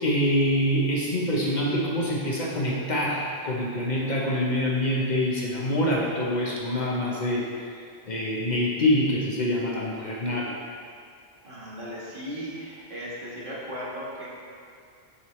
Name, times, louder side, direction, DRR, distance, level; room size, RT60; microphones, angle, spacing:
voice 1, 0.0-7.7 8.1-10.6, left 1 dB, 50° left, -4 dB, 0.8 m, -25 dB
voice 2, 11.4-14.3, equal, 55° right, -7 dB, 1.5 m, -36 dB
7.0 x 4.5 x 3.1 m, 2.4 s
omnidirectional pair, 1.1 m